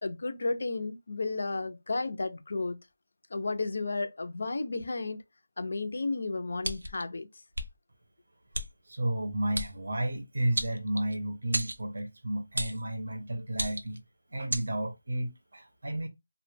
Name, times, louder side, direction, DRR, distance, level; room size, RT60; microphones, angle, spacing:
voice 1, 0.0-2.8 3.3-5.2 5.6-7.3, left 3 dB, 40° left, 0.3 m, -33 dB
sound 1, 6.6-7.0 7.5-7.7 8.5-8.7 9.5-9.7 10.6-11.2 11.5-11.8 12.6-12.8 13.5-14.0 14.5-14.7, right 1 dB, 90° right, 0.6 m, -33 dB
voice 2, 8.9-14.0 14.3-16.1, right 1 dB, 50° right, 0.7 m, -32 dB
2.1 x 2.0 x 3.1 m
figure-of-eight pair, 180°, 0 cm